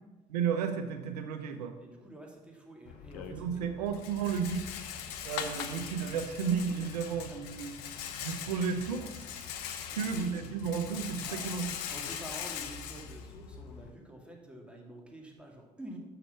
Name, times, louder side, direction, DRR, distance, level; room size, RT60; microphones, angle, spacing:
voice 1, 0.3-1.8 3.3-4.8 5.2-7.7 8.2-9.3 9.9-11.8, right 6 dB, 90° right, 7 dB, 0.9 m, -33 dB
voice 2, 1.8-3.6 6.8-8.3 9.9-10.4 11.2-11.5 11.9-16.0, right 1 dB, 5° right, 0 dB, 2.5 m, -49 dB
Rattle, 2.8-13.9, left 8 dB, 80° left, 0.8 m, -41 dB
6.7 x 6.0 x 6.8 m, 1.1 s
hypercardioid pair, 60°, 20 cm